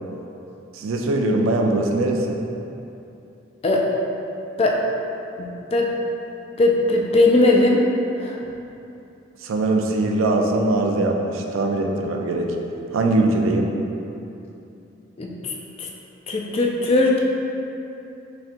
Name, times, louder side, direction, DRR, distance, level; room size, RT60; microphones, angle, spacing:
voice 1, 0.7-2.4 9.4-12.6 12.9-13.7, right 2 dB, 85° right, 2 dB, 0.4 m, -21 dB
voice 2, 5.4-5.9 6.6-7.8 8.2-8.4 15.2-15.9 16.3-17.2, left 2 dB, 30° left, -1 dB, 0.3 m, -19 dB
4.1 x 3.4 x 2.5 m, 2.8 s
head